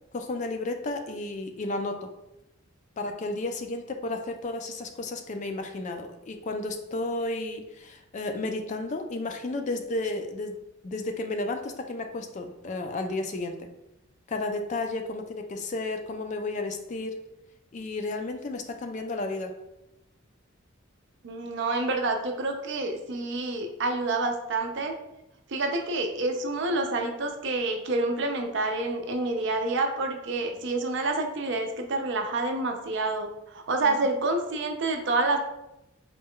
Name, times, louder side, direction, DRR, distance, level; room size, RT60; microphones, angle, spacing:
voice 1, 0.1-2.1 3.0-10.5 10.8-13.7 14.3-17.2 17.7-19.5 33.8-34.0, left 2 dB, 35° left, 5 dB, 0.3 m, -32 dB
voice 2, 21.2-24.9 25.5-35.4, right 2 dB, 60° right, 4 dB, 0.5 m, -28 dB
4.1 x 2.2 x 3.6 m, 0.91 s
head